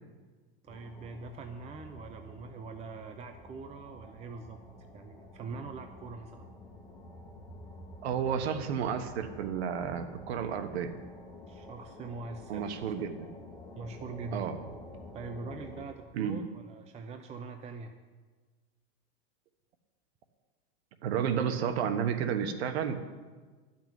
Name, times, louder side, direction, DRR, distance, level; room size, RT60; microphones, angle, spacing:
voice 1, 0.6-4.6 4.9-6.5 11.5-13.0 13.8-14.6 15.1-17.9, right 4 dB, 20° right, 7 dB, 0.6 m, -43 dB
sound 1, 0.7-15.8, left 1 dB, 10° left, 1.5 m, -49 dB
voice 2, 8.0-10.9 12.5-13.3 14.3-14.5 16.1-16.4 21.0-23.0, right 8 dB, 75° right, 8 dB, 1.3 m, -31 dB
12.0 x 6.0 x 8.9 m, 1.3 s
supercardioid pair, 135°, 32 cm